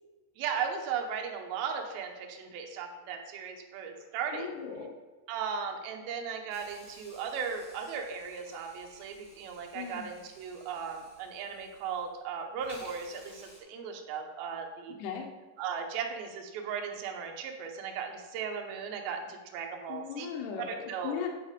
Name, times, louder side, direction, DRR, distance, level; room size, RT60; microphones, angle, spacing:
voice 1, 0.4-4.5 5.3-14.9 15.6-20.3 20.6-21.2, right 6 dB, 75° right, 3 dB, 2.5 m, -37 dB
voice 2, 4.3-4.9 9.7-10.1 15.0-15.3 19.9-21.3, left 7 dB, 75° left, 3 dB, 2.7 m, -37 dB
Hiss, 6.5-12.2 12.6-13.6, left 1 dB, 35° left, 0.8 m, -55 dB
9.1 x 4.7 x 5.0 m, 1.2 s
omnidirectional pair, 5.0 m